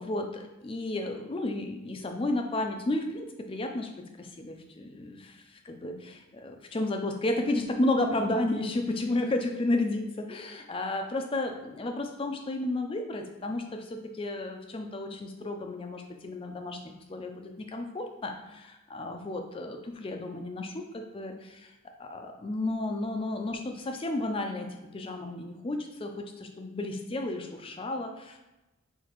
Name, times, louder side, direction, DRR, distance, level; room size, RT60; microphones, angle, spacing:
voice 1, 0.0-16.8 17.1-21.7 22.0-24.7 24.9-28.4, left 2 dB, 25° left, 4 dB, 0.3 m, -32 dB
5.7 x 2.6 x 2.9 m, 1.0 s
head